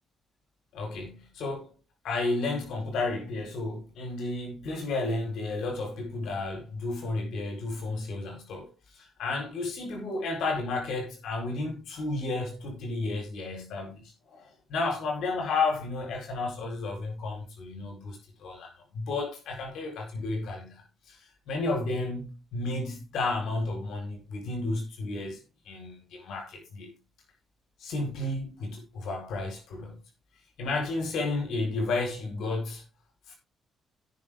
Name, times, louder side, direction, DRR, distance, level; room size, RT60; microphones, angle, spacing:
voice 1, 0.7-1.7 2.0-8.7 9.0-20.8 21.1-21.2 21.5-25.4 25.7-26.9 27.8-30.0 30.6-32.8 33.3-33.4, left 3 dB, 75° left, 4.4 m, -32 dB
17.0 x 6.3 x 3.7 m
cardioid pair, 90°, 0 cm